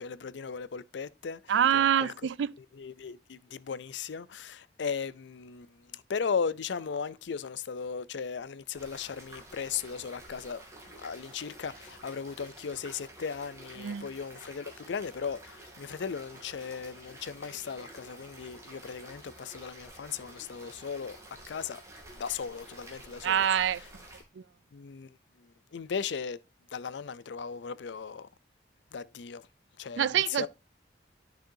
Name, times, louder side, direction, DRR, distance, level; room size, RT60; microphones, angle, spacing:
voice 1, 0.0-1.4 1.7-2.1 2.8-21.2 21.5-21.8 22.1-23.5 24.7-25.2 25.7-26.4 26.7-28.3 28.9-29.4 29.8-30.5, left 6 dB, 80° left, 0.5 m, -37 dB
voice 2, 1.5-2.5 13.8-14.1 23.2-23.8 24.4-24.5 30.0-30.5, right 9 dB, 85° right, 0.4 m, -26 dB
sound 1, 8.7-24.2, right 1 dB, 15° right, 2.8 m, -50 dB
11.5 x 6.4 x 2.7 m
head